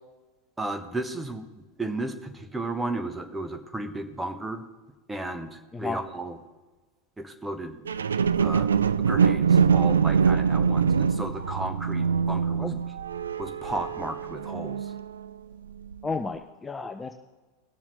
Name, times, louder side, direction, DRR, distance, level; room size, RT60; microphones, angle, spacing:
voice 1, 0.6-4.6 5.1-6.4 7.2-7.8 8.4-8.7 9.1-12.7 13.4-14.9, right 2 dB, 10° right, 7 dB, 1.2 m, -34 dB
sound 1, 7.9-15.3 15.9-16.0, right 6 dB, 80° right, 0.3 m, -24 dB
voice 2, 16.0-17.1, left 4 dB, 15° left, 6 dB, 0.6 m, -32 dB
20.0 x 7.1 x 3.3 m, 1.2 s
figure-of-eight pair, 85°, 0 cm